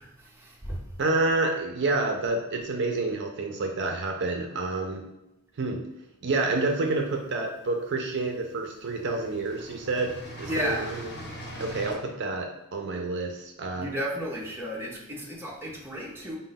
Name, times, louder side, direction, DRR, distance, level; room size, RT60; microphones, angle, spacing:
voice 1, 0.0-0.8 10.4-10.9 13.8-16.4, equal, 10° right, -3 dB, 0.6 m, -33 dB
voice 2, 1.0-5.0 5.6-5.8 6.2-11.0 11.6-13.9, right 3 dB, 55° right, 3 dB, 0.4 m, -28 dB
sound 1, 6.6-7.4 8.3-8.4 8.7-11.9, equal, 50° left, 1.1 m, -41 dB
5.1 x 2.0 x 3.9 m, 0.91 s
head